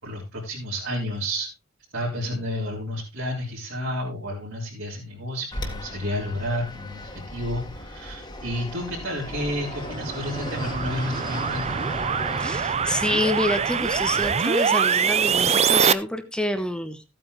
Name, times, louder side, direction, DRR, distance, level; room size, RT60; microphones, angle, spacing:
voice 1, 0.0-1.5 1.9-11.8, equal, 65° right, -5 dB, 3.8 m, -31 dB
Fixed-wing aircraft airplane, 5.5-13.3, left 1 dB, 20° left, 1.9 m, -37 dB
sound 1, 9.4-15.9, right 6 dB, 30° right, 0.5 m, -24 dB
voice 2, 12.4-17.0, left 1 dB, 5° left, 8 dB, 0.9 m, -27 dB
14.5 x 8.9 x 3.2 m, 0.25 s
head